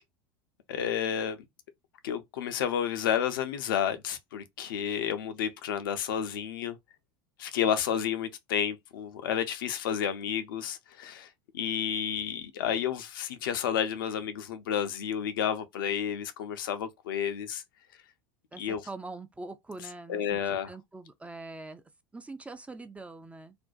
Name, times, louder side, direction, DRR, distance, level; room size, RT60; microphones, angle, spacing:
voice 1, 0.7-1.4 2.0-6.8 7.4-17.6 18.6-18.8 20.1-20.7, left 9 dB, 70° left, 0.5 m, -31 dB
voice 2, 18.5-20.4 20.7-21.8 22.1-23.6, right 3 dB, 10° right, 0.4 m, -43 dB
2.5 x 2.1 x 2.3 m
hypercardioid pair, 85°, 12 cm